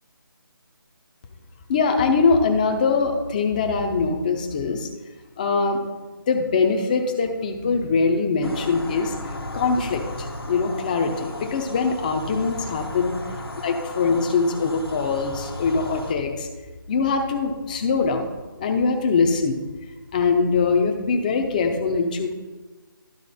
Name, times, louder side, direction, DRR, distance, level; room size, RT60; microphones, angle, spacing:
voice 1, 1.7-4.9 5.4-5.8 6.1-9.1 9.5-13.2 13.6-16.5 16.9-18.3 18.6-19.6 20.1-22.3, left 4 dB, 20° left, 4 dB, 0.7 m, -22 dB
sound 1, 8.4-16.1, left 2 dB, 90° left, 1.4 m, -35 dB
12.0 x 4.3 x 4.2 m, 1.2 s
figure-of-eight pair, 165°, 12 cm